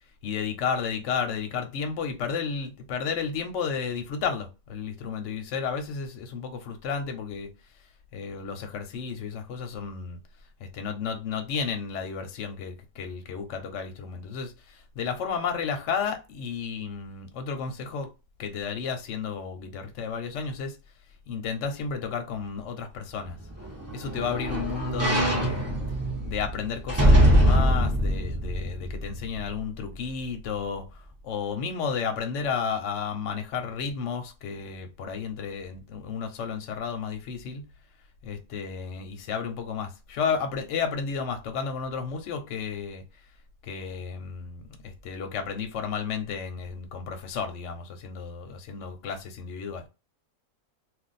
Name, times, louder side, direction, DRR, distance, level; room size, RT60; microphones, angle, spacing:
voice 1, 0.2-7.5 8.1-10.2 10.6-18.1 18.4-20.8 21.3-23.4 23.9-25.7 26.2-37.6 38.2-43.0 43.6-49.8, left 6 dB, 60° left, 0.9 m, -32 dB
sound 1, 23.3-29.6 30.0-30.1, equal, 15° right, 0.6 m, -23 dB
2.5 x 2.3 x 4.0 m
omnidirectional pair, 1.6 m